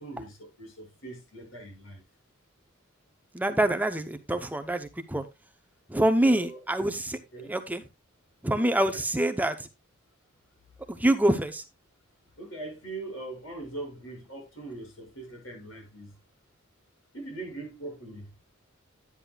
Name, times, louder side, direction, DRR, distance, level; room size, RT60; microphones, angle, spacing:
voice 1, 0.0-2.0 6.3-6.6 7.3-7.5 12.4-16.2 17.1-18.3, right 2 dB, 80° left, 6.9 m, -41 dB
voice 2, 3.3-5.2 5.9-7.2 7.4-7.8 8.4-9.7 10.9-11.6, right 1 dB, 10° right, 0.7 m, -26 dB
11.0 x 9.7 x 2.3 m
head